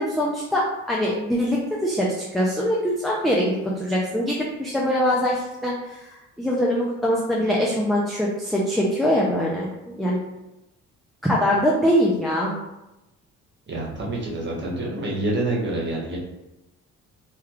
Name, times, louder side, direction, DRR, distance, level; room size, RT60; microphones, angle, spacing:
voice 1, 0.0-6.1 6.4-10.2 11.2-12.6, equal, ahead, -4 dB, 0.4 m, -23 dB
voice 2, 13.7-16.2, right 2 dB, 35° right, -3 dB, 1.1 m, -27 dB
3.3 x 3.1 x 2.4 m, 0.96 s
cardioid pair, 90°, 30 cm